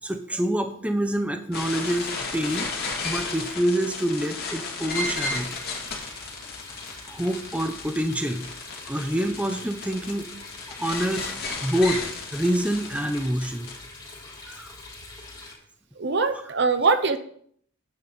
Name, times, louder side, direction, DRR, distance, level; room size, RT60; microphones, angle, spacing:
voice 1, 0.0-2.7 3.0-5.5 7.1-8.5 8.9-10.3 10.8-13.7 14.4-14.8, right 1 dB, 5° right, 7 dB, 0.6 m, -27 dB
sound 1, 1.5-13.8, left 3 dB, 45° left, 2.4 m, -33 dB
sound 2, 5.3-15.5, left 3 dB, 20° left, 3.6 m, -43 dB
voice 2, 16.0-17.2, right 4 dB, 55° right, 10 dB, 0.8 m, -22 dB
10.0 x 8.7 x 4.0 m, 0.62 s
head